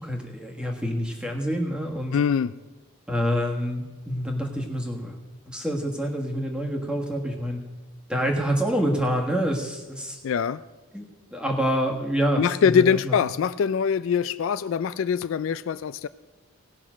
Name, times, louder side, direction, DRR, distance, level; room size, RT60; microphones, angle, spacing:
voice 1, 0.0-2.2 3.1-5.2 5.5-7.6 8.1-10.2 10.9-13.1, equal, 5° right, 1 dB, 1.4 m, -27 dB
voice 2, 2.1-2.5 10.2-10.6 12.4-16.1, left 7 dB, 65° left, 15 dB, 0.3 m, -23 dB
17.5 x 5.9 x 6.2 m, 1.1 s
head